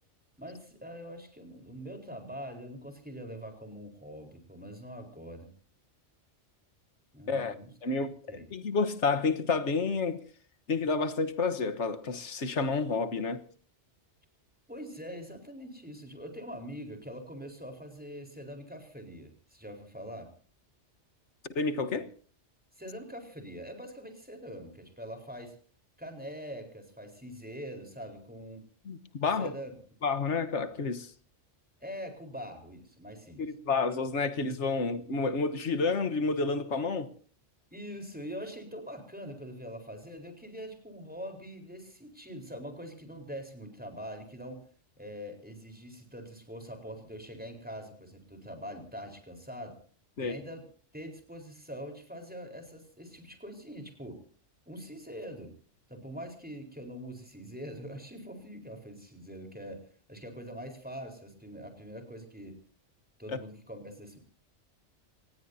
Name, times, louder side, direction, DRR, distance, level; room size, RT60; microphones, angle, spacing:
voice 1, 0.4-5.5 7.1-7.7 8.3-8.4 14.7-20.3 22.8-25.6 26.0-28.6 29.4-29.7 31.8-33.4 37.7-44.6 45.0-49.8 50.2-50.7 50.9-54.2 54.7-55.5 55.9-62.6 63.2-64.2, equal, 5° right, 4.2 m, -43 dB
voice 2, 7.8-10.2 10.7-13.4 21.5-22.1 28.8-29.5 30.0-31.1 33.4-37.1 50.2-50.4 63.3-63.4, left 4 dB, 75° left, 1.6 m, -30 dB
26.5 x 19.5 x 2.8 m
omnidirectional pair, 1.2 m